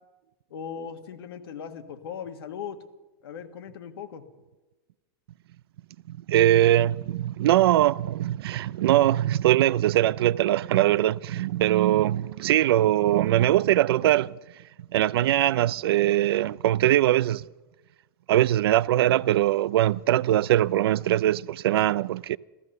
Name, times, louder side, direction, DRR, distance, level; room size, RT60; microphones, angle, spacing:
voice 1, 0.5-2.8 3.2-4.2, left 7 dB, 85° left, 1.5 m, -38 dB
voice 2, 6.1-14.4 14.9-17.4 18.3-22.4, right 13 dB, 90° right, 0.4 m, -22 dB
14.5 x 14.0 x 6.6 m
supercardioid pair, 160°, 12 cm